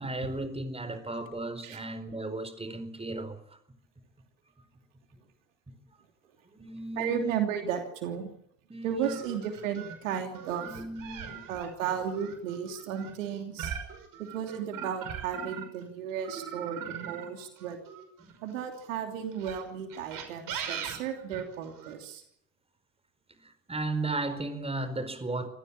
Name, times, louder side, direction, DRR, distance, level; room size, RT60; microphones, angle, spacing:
voice 1, 0.0-3.6 5.7-5.8 6.4-7.3 8.7-9.2 10.6-11.5 18.2-18.4 23.3-25.5, right 2 dB, 15° right, 4.7 m, -35 dB
voice 2, 6.9-8.3 8.8-10.8 11.5-13.7 14.2-17.8 18.4-22.2, right 8 dB, 75° right, 3.1 m, -34 dB
sound 1, 9.0-15.8 16.2-18.6 19.3-21.9, right 8 dB, 55° right, 5.6 m, -40 dB
26.0 x 16.0 x 8.8 m
hypercardioid pair, 60°, 39 cm